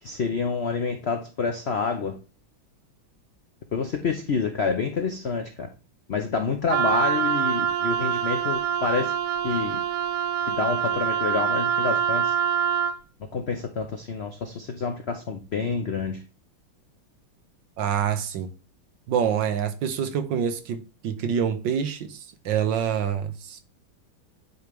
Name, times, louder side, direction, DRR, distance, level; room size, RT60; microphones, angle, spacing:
voice 1, 0.0-2.2 3.7-5.7 6.1-9.1 9.4-9.8 10.5-12.3 13.3-16.2, left 5 dB, 75° left, 0.5 m, -28 dB
Wind instrument woodwind instrument, 6.7-13.0, right 8 dB, 85° right, 1.5 m, -25 dB
voice 2, 17.8-18.5 19.1-22.2 22.4-23.6, right 8 dB, 65° right, 1.4 m, -26 dB
9.3 x 3.2 x 5.2 m
omnidirectional pair, 2.3 m